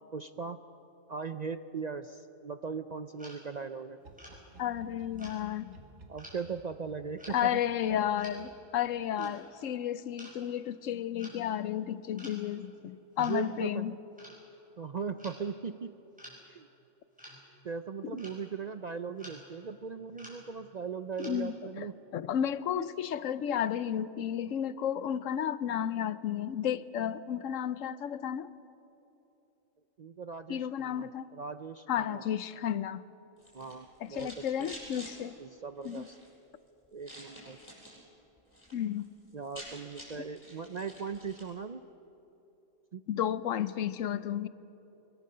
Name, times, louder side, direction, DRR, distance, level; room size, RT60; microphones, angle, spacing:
voice 1, 0.1-0.6 1.1-4.0 6.1-7.6 9.2-9.3 13.2-13.9 14.8-15.9 16.5-16.7 17.6-22.0 22.8-22.9 30.0-32.3 33.5-34.7 35.4-36.2 36.9-37.6 39.3-41.8 42.9-43.0, right 5 dB, 50° right, 10 dB, 0.5 m, -39 dB
sound 1, 3.2-3.4 4.2-4.4 5.2-5.4 6.2-6.4 7.2-7.4 8.2-8.4 9.1-9.4 10.2-10.4 11.2-11.4 12.2-12.4 13.2-13.4 14.2-14.4 15.2-15.4 16.2-16.4 17.2-17.4 18.2-18.4 19.2-19.5 20.0-20.7 21.2-21.3, equal, 5° right, 5.6 m, -50 dB
sound 2, 4.0-9.2 11.0-11.3 11.6-11.7, right 2 dB, 85° right, 2.1 m, -56 dB
voice 2, 4.6-5.8 7.3-14.0 18.0-18.1 21.2-21.9 22.1-28.5 30.5-31.3 31.9-33.0 34.0-35.3 35.8-36.1 38.7-39.1 43.1-44.5, left 10 dB, 80° left, 15 dB, 1.1 m, -32 dB
sound 3, 33.4-35.1 35.7-36.3 37.0-38.0 38.4-38.8 39.0-39.1 39.3-41.5, equal, 20° left, 6.8 m, -49 dB
22.5 x 22.5 x 6.7 m, 3.0 s
omnidirectional pair, 1.3 m